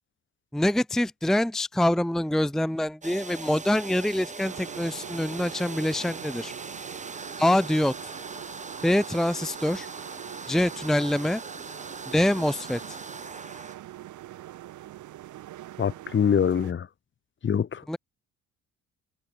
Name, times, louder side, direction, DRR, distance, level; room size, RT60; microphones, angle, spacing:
voice 1, 0.5-6.5 7.4-7.9 8.8-9.9 10.5-11.4 12.1-13.0 17.9-18.0, left 1 dB, ahead, 0.7 m, -25 dB
sound 1, 3.0-13.8, right 4 dB, 25° right, 7.2 m, -40 dB
sound 2, 4.4-16.7, right 14 dB, 75° right, 4.4 m, -44 dB
voice 2, 15.8-16.9 17.4-17.8, left 7 dB, 40° left, 1.4 m, -24 dB
cardioid pair, 95°, 30 cm